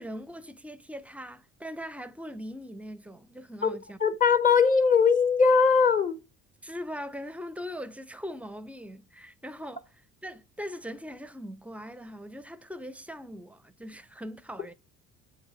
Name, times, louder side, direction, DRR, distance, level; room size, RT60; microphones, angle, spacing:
voice 1, 0.0-4.0 6.6-9.8 10.2-14.7, equal, 5° right, 0.5 m, -40 dB
voice 2, 4.0-6.2, left 5 dB, 25° left, 0.8 m, -20 dB
7.2 x 2.7 x 5.4 m
supercardioid pair, 80°, 33 cm